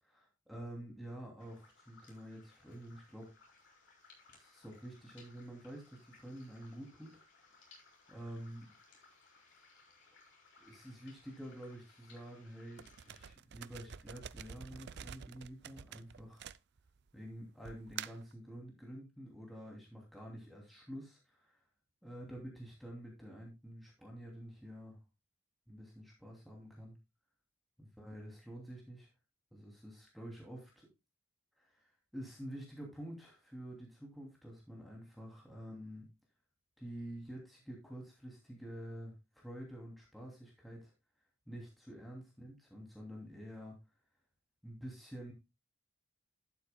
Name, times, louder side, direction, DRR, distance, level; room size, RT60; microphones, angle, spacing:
voice 1, 0.0-3.3 4.3-7.7 8.1-8.7 8.9-9.1 10.6-16.5 17.1-21.6 22.0-25.0 25.7-26.9 27.8-29.1 29.5-30.9 31.6-36.1 36.8-40.9 41.5-43.8 44.6-45.3, equal, ahead, -2 dB, 2.7 m, -49 dB
sound 1, 1.4-13.3, left 3 dB, 55° left, 4.4 m, -63 dB
sound 2, 12.8-17.1 17.6-18.3, right 8 dB, 55° right, 0.4 m, -48 dB
12.0 x 9.2 x 2.2 m, 0.24 s
head